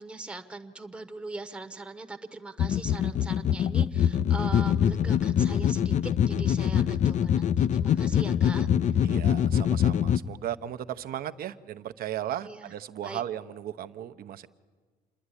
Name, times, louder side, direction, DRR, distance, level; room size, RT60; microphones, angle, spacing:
voice 1, 0.0-9.0 12.4-12.7 13.0-13.2, right 3 dB, 5° right, 6 dB, 0.9 m, -41 dB
sound 1, 2.6-10.2, left 9 dB, 45° left, 0.5 m, -24 dB
voice 2, 9.0-14.5, right 11 dB, 60° right, 11 dB, 0.8 m, -36 dB
27.5 x 10.5 x 9.8 m, 1.5 s
cardioid pair, 110°, 17 cm